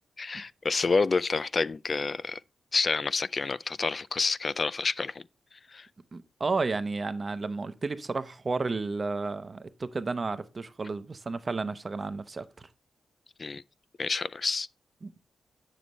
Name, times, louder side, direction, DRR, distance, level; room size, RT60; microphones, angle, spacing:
voice 1, 0.2-2.4 2.7-5.2 5.7-5.9 13.4-13.6 14.0-14.7, left 4 dB, 45° left, 0.3 m, -28 dB
voice 2, 6.1-12.5 15.0-15.1, right 3 dB, 40° right, 0.8 m, -32 dB
7.7 x 6.9 x 3.1 m
cardioid pair, 65°, 0 cm